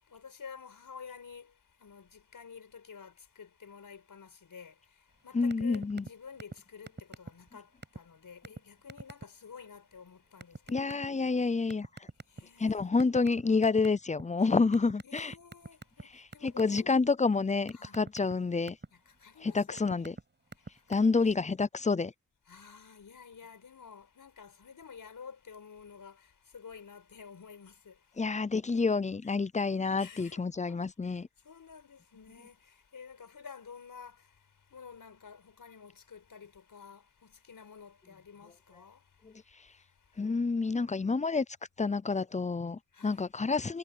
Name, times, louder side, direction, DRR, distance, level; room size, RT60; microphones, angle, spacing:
voice 1, 0.0-10.9 12.3-13.0 15.0-16.9 17.7-18.0 18.9-20.1 20.6-21.3 22.5-28.3 30.0-30.4 30.7-40.4 42.9-43.3, left 6 dB, 70° left, 5.5 m, -51 dB
voice 2, 5.3-6.0 10.7-11.9 12.6-15.3 16.1-18.8 19.4-20.1 20.9-22.1 28.2-31.3 39.2-39.3 40.2-41.5 41.8-43.8, left 4 dB, 20° left, 0.6 m, -28 dB
sound 1, 5.5-6.1 6.4-6.6 6.9-7.5 7.8-8.0 8.4-8.6 8.9-9.2 10.4-11.1 11.7-12.6 13.0-14.2 14.7-16.0 16.3-16.8 17.2-18.9 19.5-20.2 20.5-20.9, right 3 dB, 30° right, 6.7 m, -43 dB
wide cardioid pair, 90°, 35 cm